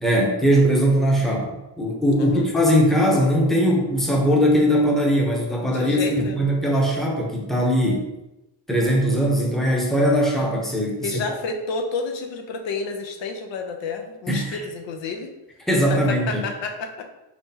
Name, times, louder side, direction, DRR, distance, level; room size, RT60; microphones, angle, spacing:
voice 1, 0.0-8.1 8.7-11.2 14.3-14.6 15.7-16.4, equal, ahead, -2 dB, 0.7 m, -20 dB
voice 2, 5.6-6.4 11.0-15.3 15.9-17.1, left 4 dB, 75° left, 4 dB, 0.7 m, -30 dB
4.4 x 4.2 x 2.7 m, 0.98 s
wide cardioid pair, 140°, 45 cm